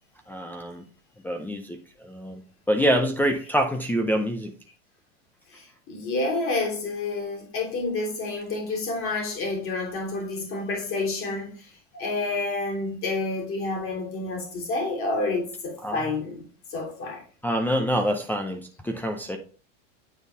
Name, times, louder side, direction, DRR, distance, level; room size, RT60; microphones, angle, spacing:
voice 1, 0.3-0.8 1.2-2.4 2.7-4.5 15.8-16.1 17.4-19.4, equal, 5° left, 0.5 m, -26 dB
voice 2, 5.5-17.2, left 3 dB, 35° left, 3.1 m, -29 dB
9.3 x 4.0 x 3.4 m
supercardioid pair, 130°, 38 cm